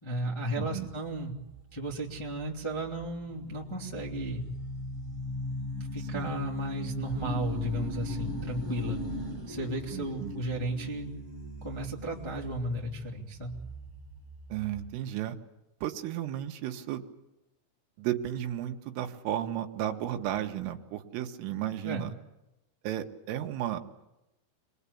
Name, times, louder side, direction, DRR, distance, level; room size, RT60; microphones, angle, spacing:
voice 1, 0.0-1.3 1.7-4.4 5.9-9.0 9.5-11.1 11.6-13.5 21.8-22.0, right 1 dB, 10° left, -3 dB, 1.4 m, -34 dB
voice 2, 0.6-0.9 6.1-6.3 9.9-10.3 14.5-15.4 15.8-17.0 18.0-22.1 22.8-23.8, right 12 dB, 75° right, 5 dB, 3.8 m, -34 dB
sound 1, 1.1-14.9, equal, 25° right, 4.6 m, -39 dB
27.0 x 21.0 x 8.5 m, 0.93 s
omnidirectional pair, 6.0 m